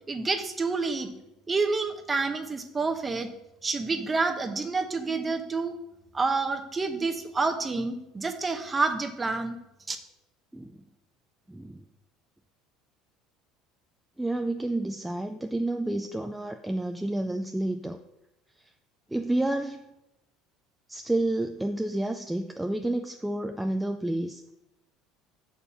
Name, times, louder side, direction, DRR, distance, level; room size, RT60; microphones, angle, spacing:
voice 1, 0.1-1.1 1.5-3.3 3.6-5.8 6.1-9.5 9.9-10.0, right 3 dB, 20° right, 7 dB, 0.8 m, -28 dB
voice 2, 10.5-10.8 11.5-11.8 14.2-18.0 18.6-18.7 19.1-19.8 20.9-24.5, right 1 dB, 5° right, 5 dB, 0.4 m, -30 dB
6.7 x 4.3 x 5.6 m, 0.89 s
supercardioid pair, 100°, 0 cm